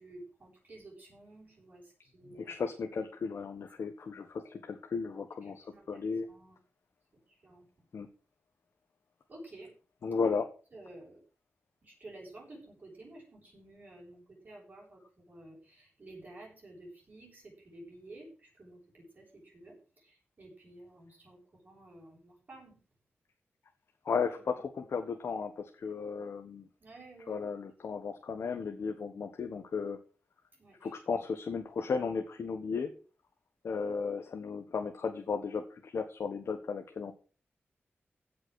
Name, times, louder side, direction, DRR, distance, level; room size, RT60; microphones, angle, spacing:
voice 1, 0.0-2.6 3.8-3.9 5.4-6.6 7.3-7.6 9.3-9.7 10.7-11.2 11.8-22.8 26.8-27.4 30.6-30.9, right 2 dB, 40° right, -4 dB, 7.6 m, -52 dB
voice 2, 2.4-6.3 7.9-8.1 10.0-10.5 24.0-26.6 27.3-30.0 30.8-32.9 33.6-37.1, left 5 dB, 70° left, 5 dB, 1.4 m, -35 dB
16.0 x 6.1 x 6.5 m, 0.37 s
wide cardioid pair, 140°, 5 cm